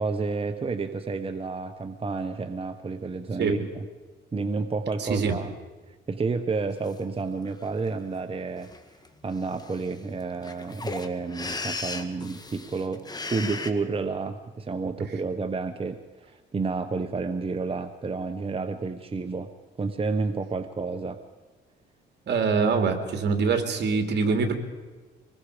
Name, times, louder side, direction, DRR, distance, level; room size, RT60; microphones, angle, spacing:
voice 1, 0.0-3.9 4.3-5.5 5.9-8.7 9.2-19.5 19.8-21.2, right 4 dB, 30° right, 8 dB, 1.1 m, -30 dB
voice 2, 5.0-5.4 22.3-24.5, right 5 dB, 60° right, 5 dB, 3.0 m, -24 dB
sound 1, 6.9-7.0 7.4-7.9 8.6-8.8 9.0-9.1 9.3-13.7, left 3 dB, 20° left, 1.7 m, -36 dB
25.0 x 21.0 x 5.1 m, 1.3 s
cardioid pair, 90°, 20 cm